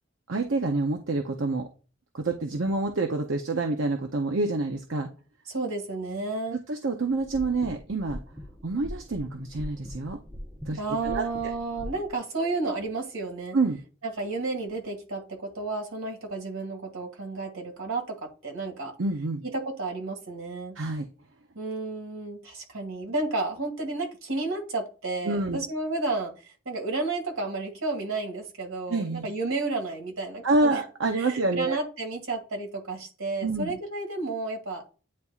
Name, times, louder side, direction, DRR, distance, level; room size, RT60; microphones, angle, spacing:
voice 1, 0.3-1.6 2.1-5.1 6.7-8.2 8.6-10.2 10.7-11.2 13.5-13.8 19.0-19.4 20.8-21.1 25.2-25.6 28.9-29.3 30.4-31.8 33.4-33.8, right 3 dB, 65° right, 4 dB, 0.7 m, -27 dB
voice 2, 5.5-6.6 10.8-13.6 14.2-18.9 19.4-20.8 21.6-30.8 31.1-34.9, right 3 dB, 80° right, 2 dB, 2.0 m, -32 dB
sound 1, 7.0-12.1, equal, 5° right, 1.0 m, -41 dB
9.5 x 4.2 x 2.4 m, 0.35 s
head